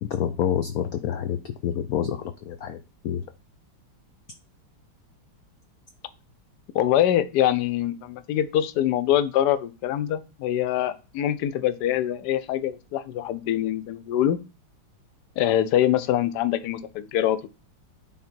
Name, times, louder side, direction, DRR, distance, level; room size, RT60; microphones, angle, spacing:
voice 1, 0.0-2.8 3.0-3.2, left 9 dB, 90° left, 9 dB, 0.7 m, -28 dB
voice 2, 6.7-14.4 15.4-17.5, left 11 dB, 70° left, 13 dB, 1.1 m, -24 dB
9.2 x 3.7 x 4.4 m, 0.31 s
omnidirectional pair, 2.2 m